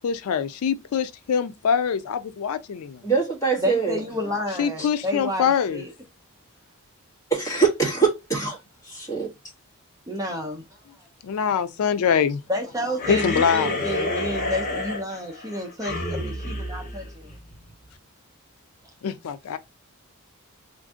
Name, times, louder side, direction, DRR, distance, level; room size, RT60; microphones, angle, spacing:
voice 1, 0.0-3.0 4.5-5.8 11.2-12.4 13.1-13.8 19.0-19.6, left 7 dB, 80° left, 0.4 m, -24 dB
voice 2, 3.0-4.0 4.8-4.9 7.3-8.6 8.8-9.3, right 5 dB, 15° left, 1.6 m, -23 dB
voice 3, 3.6-5.9 10.1-10.6 12.5-17.3, left 1 dB, 15° right, 0.7 m, -30 dB
sound 1, 13.0-17.7, left 2 dB, 40° left, 1.0 m, -30 dB
3.2 x 2.6 x 3.6 m
head